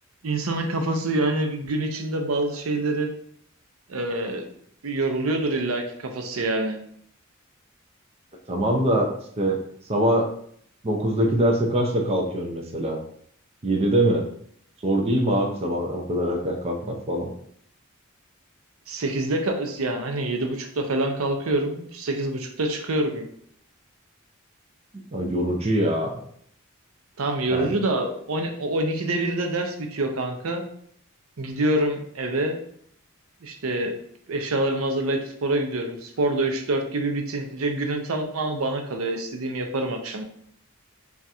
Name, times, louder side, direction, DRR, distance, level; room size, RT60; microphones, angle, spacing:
voice 1, 0.2-3.1 3.9-4.5 4.8-6.8 18.9-23.2 27.2-30.6 31.4-32.6 33.4-33.9 34.3-40.2, right 2 dB, 80° right, 4 dB, 0.6 m, -26 dB
voice 2, 8.5-9.1 9.4-9.6 9.9-10.3 10.8-13.0 13.6-14.2 14.8-17.3 25.1-26.2 27.5-27.8, right 1 dB, 30° right, 2 dB, 0.5 m, -23 dB
3.6 x 2.4 x 4.2 m, 0.65 s
head